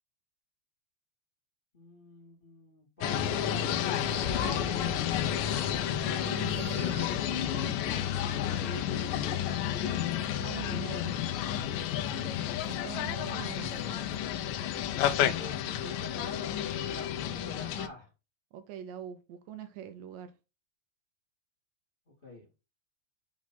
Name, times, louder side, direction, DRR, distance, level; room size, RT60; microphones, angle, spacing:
voice 1, 1.7-4.8 8.2-9.1 10.4-10.9 12.0-12.3 15.2-18.1 22.1-22.5, left 1 dB, 20° left, 1.8 m, -47 dB
sound 1, 3.0-17.9, left 10 dB, 75° left, 2.2 m, -31 dB
sound 2, 3.8-9.1 9.4-9.5 10.2-10.4 10.9-11.0 11.6-12.2 12.5-15.0, right 3 dB, 50° right, 1.0 m, -51 dB
voice 2, 5.9-7.8 10.4-11.2 12.7-13.9 18.5-20.3, right 10 dB, 80° right, 2.2 m, -43 dB
6.3 x 3.6 x 5.9 m
omnidirectional pair, 4.1 m